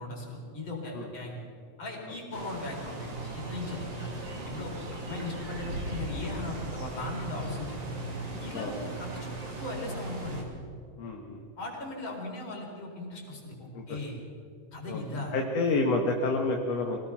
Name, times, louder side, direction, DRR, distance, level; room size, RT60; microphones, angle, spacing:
voice 1, 0.0-1.4 1.8-4.1 4.4-7.9 8.4-10.5 11.6-14.1 14.7-15.3, left 2 dB, 40° left, -1 dB, 5.0 m, -38 dB
sound 1, 2.3-10.4, right 2 dB, 40° right, 3.4 m, -38 dB
voice 2, 11.0-11.4 13.7-14.0 14.9-15.0 15.3-17.0, left 3 dB, 65° left, 1 dB, 2.5 m, -29 dB
25.0 x 18.0 x 5.9 m, 2.4 s
omnidirectional pair, 3.3 m